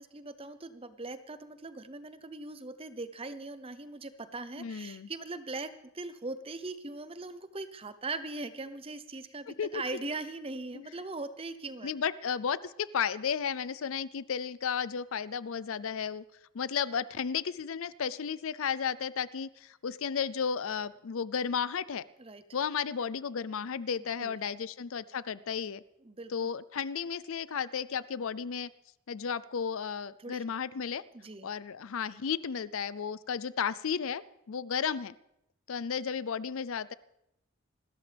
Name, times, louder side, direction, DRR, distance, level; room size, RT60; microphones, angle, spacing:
voice 1, 0.0-11.9 22.2-22.4 24.2-24.4 26.0-26.3 30.2-30.4 31.1-31.5, right 3 dB, 25° right, 12 dB, 0.8 m, -40 dB
voice 2, 4.6-5.1 9.6-9.8 10.7-10.9 11.8-16.2 16.5-22.0 22.5-25.8 26.3-28.7 29.1-31.0 31.4-34.2 34.5-35.1 35.7-36.9, left 7 dB, 65° left, 18 dB, 0.5 m, -33 dB
27.0 x 13.0 x 3.4 m, 0.82 s
head